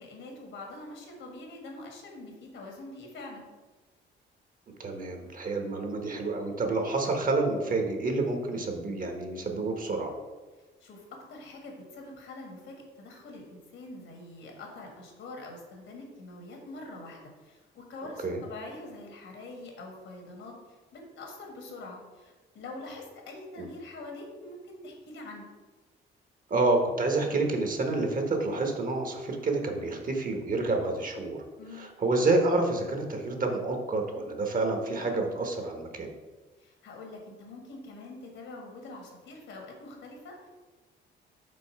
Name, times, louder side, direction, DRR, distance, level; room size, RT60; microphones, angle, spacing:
voice 1, 0.0-3.5 10.8-20.5 20.9-25.5 31.6-31.9 36.6-40.5, left 2 dB, 80° left, 1 dB, 1.9 m, -44 dB
voice 2, 4.8-10.1 18.2-18.4 23.6-23.7 26.5-31.4 31.7-36.1, right 3 dB, 45° right, 4 dB, 1.2 m, -28 dB
5.3 x 3.8 x 5.8 m, 1.3 s
cardioid pair, 90°, 20 cm